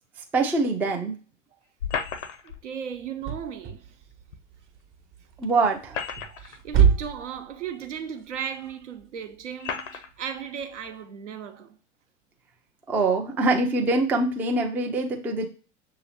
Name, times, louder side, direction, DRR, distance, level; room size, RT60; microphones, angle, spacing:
voice 1, 0.3-1.2 5.4-6.0 12.9-15.5, right 3 dB, 5° right, 0.3 m, -24 dB
sound 1, 1.8-2.6 4.3-4.4 5.7-6.6 7.5-7.6 8.5-8.6 9.6-10.1, left 6 dB, 75° left, 0.6 m, -33 dB
voice 2, 2.4-4.0 6.2-11.8, right 8 dB, 70° right, 0.8 m, -36 dB
sound 2, 2.9-11.0, right 7 dB, 30° right, 0.9 m, -28 dB
6.5 x 2.8 x 2.8 m
figure-of-eight pair, 85°, 38 cm